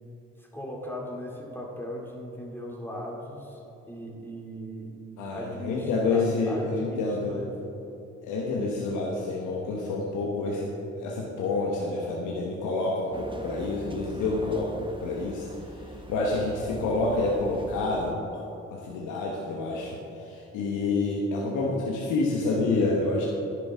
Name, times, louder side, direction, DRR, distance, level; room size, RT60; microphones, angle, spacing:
voice 1, 0.4-5.0 5.3-7.6, equal, 5° left, -2 dB, 2.5 m, -38 dB
voice 2, 5.2-7.4 8.2-10.7 11.0-18.4 18.7-23.2, left 3 dB, 80° left, -2 dB, 1.2 m, -28 dB
sound 1, 13.1-18.1, right 1 dB, 15° right, 1.2 m, -42 dB
10.5 x 10.5 x 3.6 m, 3.0 s
hypercardioid pair, 50°, 30 cm